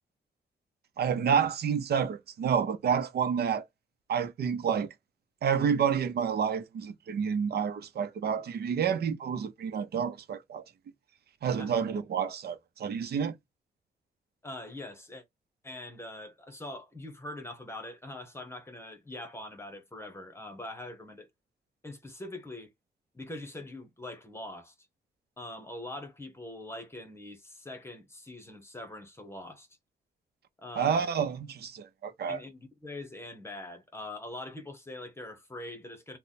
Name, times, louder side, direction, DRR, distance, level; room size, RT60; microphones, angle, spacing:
voice 1, 1.0-3.6 4.1-4.9 5.4-10.6 11.4-13.3 30.8-32.4, right 7 dB, 70° right, 0.8 m, -29 dB
voice 2, 14.4-15.2 15.6-21.3 21.8-22.7 23.1-24.7 25.4-29.7 30.6-31.1 32.3-36.2, left 1 dB, 15° left, 1.1 m, -43 dB
3.3 x 2.2 x 4.0 m
wide cardioid pair, 145°, 17 cm